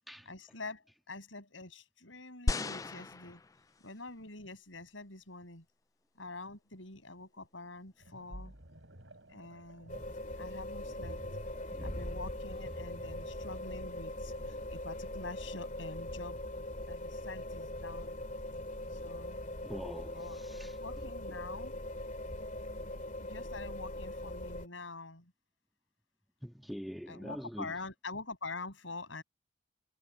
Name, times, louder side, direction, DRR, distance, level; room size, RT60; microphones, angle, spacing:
voice 1, 0.2-3.4 3.8-5.6 6.1-8.5 9.3-10.0 10.4-11.2 11.8-16.4 16.9-18.2 18.9-19.5 20.1-20.4 20.8-22.0 23.2-25.3 27.1-29.2, left 3 dB, 85° left, 6.7 m, -46 dB
sound 1, 2.5-4.0 4.7-4.8, left 2 dB, 15° left, 0.3 m, -35 dB
sound 2, 8.0-15.0, right 1 dB, 75° right, 6.7 m, -52 dB
sound 3, 9.9-24.7, left 1 dB, 40° left, 2.6 m, -41 dB
voice 2, 11.7-12.0 19.6-21.1 26.4-27.7, equal, ahead, 2.3 m, -44 dB
head